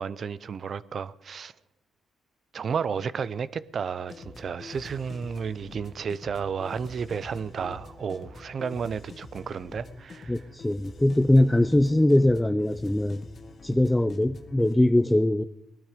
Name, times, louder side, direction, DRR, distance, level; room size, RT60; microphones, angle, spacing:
voice 1, 0.0-1.5 2.5-10.4, right 6 dB, 50° right, 0.6 m, -32 dB
sound 1, 4.1-14.8, left 3 dB, 45° left, 1.8 m, -45 dB
voice 2, 10.3-13.2 13.6-15.4, left 1 dB, 10° left, 0.5 m, -21 dB
19.5 x 12.5 x 5.1 m
cardioid pair, 90°, 0 cm